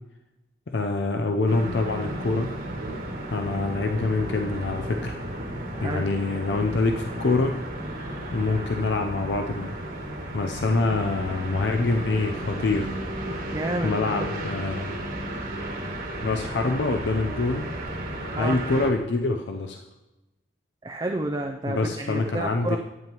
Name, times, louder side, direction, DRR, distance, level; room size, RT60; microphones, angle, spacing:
voice 1, 0.7-2.5 3.3-5.2 5.8-7.6 8.3-9.8 10.3-13.0 13.8-15.0 16.2-17.7 18.4-19.8 21.7-22.8, left 3 dB, 80° left, 4 dB, 0.6 m, -25 dB
sound 1, 1.4-18.9, right 1 dB, 50° right, 1.5 m, -33 dB
voice 2, 5.7-6.1 13.5-14.1 18.4-18.6 20.8-22.8, right 2 dB, 25° right, 3 dB, 0.4 m, -30 dB
11.0 x 8.9 x 3.0 m, 1.0 s
head